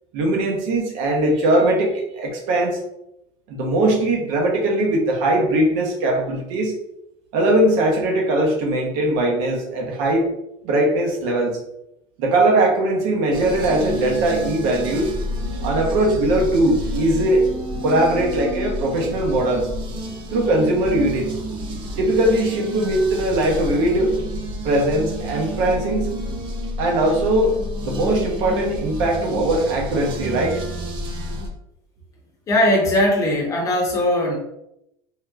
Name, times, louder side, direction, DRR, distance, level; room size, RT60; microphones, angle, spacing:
voice 1, 0.1-2.8 3.5-6.7 7.3-10.3 10.6-11.6 12.2-15.1 15.6-17.5 17.8-19.7 20.3-21.3 22.0-24.1 24.6-26.1 26.8-30.6, right 1 dB, 70° right, 1 dB, 0.8 m, -20 dB
sound 1, 13.3-31.5, equal, 40° right, 0.5 m, -30 dB
voice 2, 32.5-34.4, left 1 dB, 30° left, 0 dB, 0.8 m, -19 dB
3.3 x 2.8 x 2.3 m, 0.82 s
cardioid pair, 160°, 12 cm